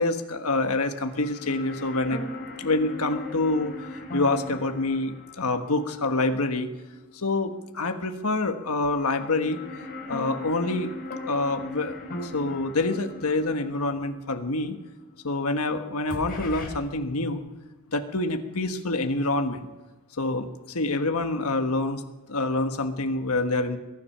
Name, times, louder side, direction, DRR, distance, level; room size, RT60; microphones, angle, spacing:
voice 1, 0.0-2.2 2.6-3.7 4.1-6.7 7.1-9.6 10.1-10.9 11.3-11.9 12.2-14.8 15.2-17.4 17.9-19.7 20.2-22.0 22.3-23.8, left 2 dB, 75° left, 6 dB, 1.4 m, -26 dB
sound 1, 1.0-7.3 7.6-7.7 8.8-15.7 16.1-16.7, left 1 dB, 40° left, 6.0 m, -39 dB
22.0 x 10.5 x 5.7 m, 1.2 s
head